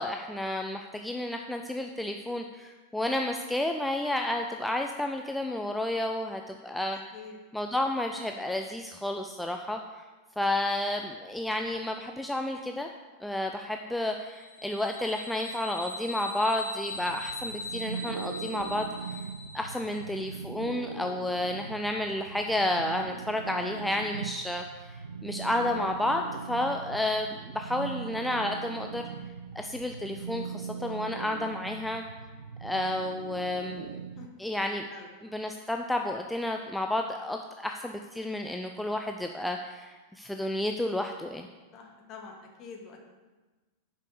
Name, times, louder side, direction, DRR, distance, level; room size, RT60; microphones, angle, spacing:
voice 1, 0.0-7.0 7.5-10.0 10.4-12.9 13.2-18.9 19.5-29.1 29.6-32.0 32.6-34.0 34.4-34.9 35.2-41.5, left 1 dB, 5° left, 4 dB, 0.4 m, -31 dB
sound 1, 14.3-20.2, left 1 dB, 80° left, 0.9 m, -40 dB
sound 2, 16.9-34.3, right 6 dB, 75° right, 0.4 m, -40 dB
voice 2, 41.7-43.0, left 4 dB, 35° left, 1 dB, 1.5 m, -46 dB
6.5 x 5.3 x 6.4 m, 1.3 s
figure-of-eight pair, 90°, 0 cm